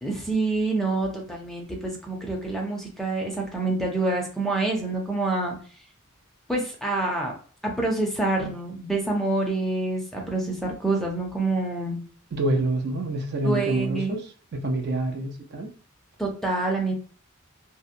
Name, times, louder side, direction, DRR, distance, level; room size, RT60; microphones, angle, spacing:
voice 1, 0.0-5.6 6.5-7.3 7.6-12.1 13.4-14.2 16.2-16.9, right 2 dB, ahead, 0 dB, 0.5 m, -27 dB
voice 2, 12.3-14.2 14.5-15.7, right 2 dB, 50° right, 3 dB, 0.4 m, -27 dB
2.7 x 2.1 x 2.5 m, 0.43 s
head